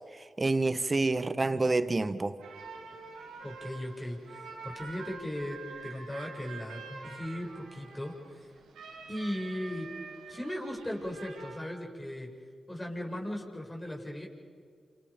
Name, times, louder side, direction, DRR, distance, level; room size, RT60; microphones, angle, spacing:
voice 1, 0.4-2.4, right 3 dB, 35° right, 1.5 m, -27 dB
sound 1, 2.4-11.6, right 4 dB, 85° right, 4.6 m, -46 dB
voice 2, 3.4-8.1 9.1-9.9 10.3-12.3 12.7-14.3, left 1 dB, 20° left, 7.3 m, -37 dB
28.5 x 27.5 x 5.3 m
supercardioid pair, 40°, 0 cm